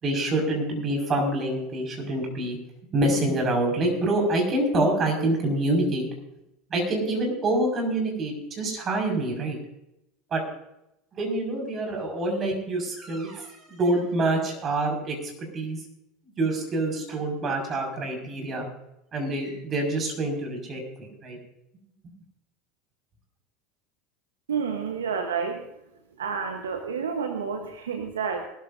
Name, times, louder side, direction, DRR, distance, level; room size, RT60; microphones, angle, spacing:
voice 1, 0.0-2.6 2.9-6.1 6.7-9.6 10.3-10.4 11.2-15.8 16.4-18.7 19.1-21.4, right 2 dB, 35° right, 2 dB, 5.8 m, -26 dB
voice 2, 24.5-25.7 26.2-28.4, right 6 dB, 85° right, 5 dB, 1.2 m, -29 dB
22.0 x 13.0 x 2.7 m, 0.85 s
hypercardioid pair, 80°, 0 cm